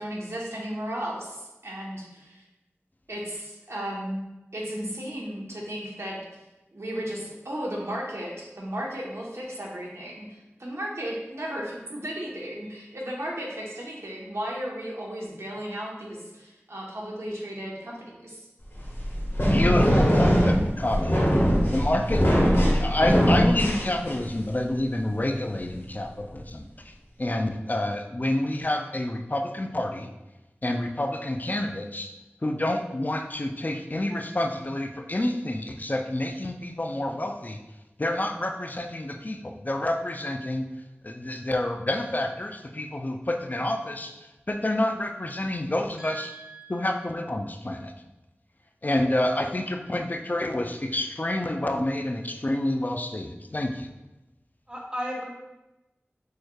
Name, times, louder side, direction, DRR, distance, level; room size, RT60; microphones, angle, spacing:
voice 1, 0.0-2.4 3.1-4.2 4.5-6.2 6.7-10.3 10.6-18.5, equal, 70° right, -3 dB, 1.0 m, -34 dB
sound 1, 18.8-24.4, equal, 55° left, 1.5 m, -21 dB
voice 2, 19.5-21.2 21.7-22.2 22.7-26.9 27.2-30.1 30.6-32.1 32.4-37.6 38.0-40.6 41.0-46.3 46.7-47.9 48.8-53.9, left 1 dB, 40° left, 4 dB, 0.4 m, -28 dB
voice 3, 46.0-46.7 54.7-55.3, equal, 20° right, -2 dB, 1.0 m, -35 dB
6.3 x 3.1 x 2.3 m, 1.0 s
wide cardioid pair, 45°, 5 cm